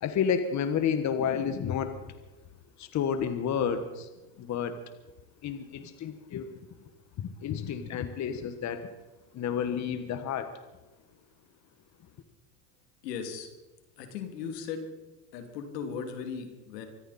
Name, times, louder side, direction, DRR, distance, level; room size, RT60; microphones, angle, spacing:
voice 1, 0.0-1.9 2.8-4.1 4.4-4.7 5.4-6.5 7.2-8.9 9.3-10.5, left 7 dB, 35° left, 9 dB, 1.4 m, -30 dB
voice 2, 13.0-13.5 14.0-14.9 15.3-16.9, left 6 dB, 80° left, 6 dB, 2.9 m, -37 dB
25.0 x 13.5 x 4.3 m, 1.1 s
supercardioid pair, 105°, 48 cm